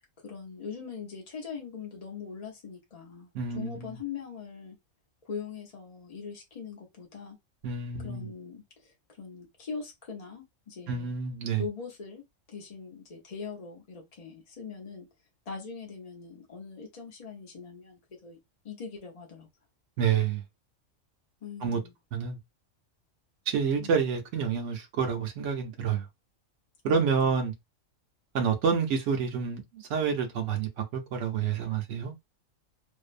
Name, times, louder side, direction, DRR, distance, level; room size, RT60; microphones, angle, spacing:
voice 1, 0.2-4.8 5.2-7.4 8.0-11.2 11.6-12.2 12.5-15.1 15.5-18.4 18.6-19.5 21.4-21.9 23.8-24.0 26.9-27.4, left 5 dB, 45° left, 0.5 m, -41 dB
voice 2, 3.3-4.0 7.6-8.3 10.9-11.6 20.0-20.4 21.6-21.8 22.1-22.4 23.5-26.0 26.8-27.5 28.3-32.1, right 6 dB, 70° right, 0.9 m, -28 dB
2.6 x 2.1 x 2.4 m
omnidirectional pair, 1.4 m